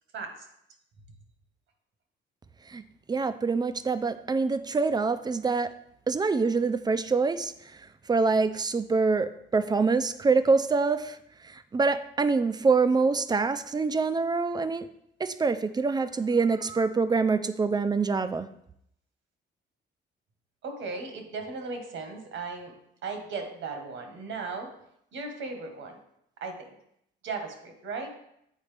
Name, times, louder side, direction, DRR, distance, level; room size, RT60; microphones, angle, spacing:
voice 1, 3.1-5.7 6.1-7.8 8.1-11.2 11.4-14.9 15.2-18.5, right 4 dB, 20° right, 12 dB, 0.4 m, -25 dB
voice 2, 20.6-22.7 23.0-24.7 25.1-26.0 26.4-26.7 27.2-28.1, right 4 dB, 75° right, 4 dB, 1.3 m, -36 dB
8.2 x 4.1 x 3.3 m, 0.74 s
cardioid pair, 90°, 20 cm